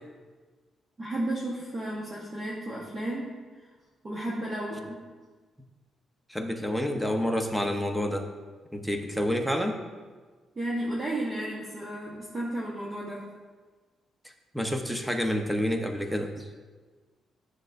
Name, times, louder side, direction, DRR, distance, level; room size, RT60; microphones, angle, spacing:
voice 1, 1.0-3.3 4.0-5.0 10.5-13.3, right 1 dB, 30° right, -5 dB, 1.1 m, -33 dB
voice 2, 6.3-8.3 8.7-9.8 14.5-16.5, equal, 5° right, 4 dB, 0.7 m, -28 dB
10.0 x 6.4 x 2.5 m, 1.4 s
cardioid pair, 120°, 0 cm